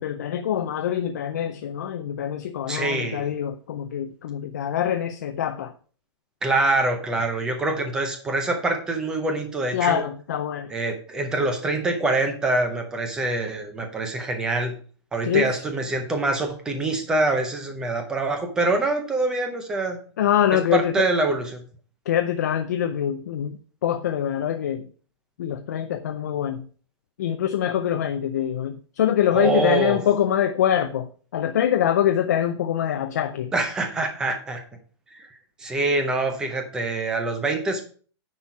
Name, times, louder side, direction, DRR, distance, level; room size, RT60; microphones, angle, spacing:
voice 1, 0.0-5.7 9.7-10.7 15.2-15.6 20.2-21.1 22.1-24.9 25.4-26.7 27.2-33.5, left 10 dB, 40° left, 8 dB, 0.4 m, -24 dB
voice 2, 2.7-3.3 6.4-10.0 10.7-14.7 15.1-20.0 20.7-21.6 29.3-30.0 33.5-34.6 35.1-35.3 35.6-37.8, right 2 dB, 5° right, 5 dB, 0.6 m, -25 dB
9.6 x 4.4 x 4.4 m, 0.43 s
hypercardioid pair, 180°, 14 cm